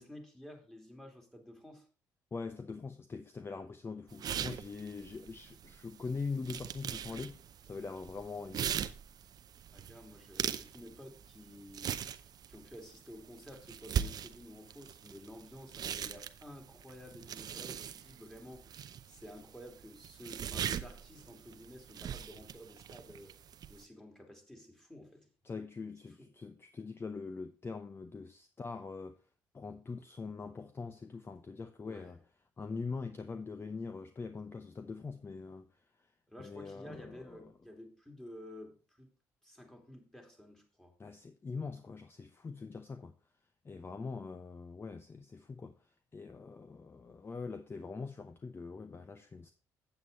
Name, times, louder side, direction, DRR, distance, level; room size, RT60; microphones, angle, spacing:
voice 1, 0.0-1.9 9.7-12.0 12.5-18.7 19.1-23.4 23.7-25.3 26.2-26.3 31.8-32.1 36.3-39.1 39.4-41.0, left 1 dB, 5° left, 2.9 m, -52 dB
voice 2, 2.3-8.8 25.4-29.1 29.5-32.2 32.6-35.8 36.4-37.5 41.0-43.1 43.6-49.5, left 4 dB, 30° left, 0.8 m, -43 dB
sound 1, 4.1-23.8, right 9 dB, 55° right, 0.6 m, -41 dB
8.0 x 7.8 x 4.1 m
supercardioid pair, 70°, 8 cm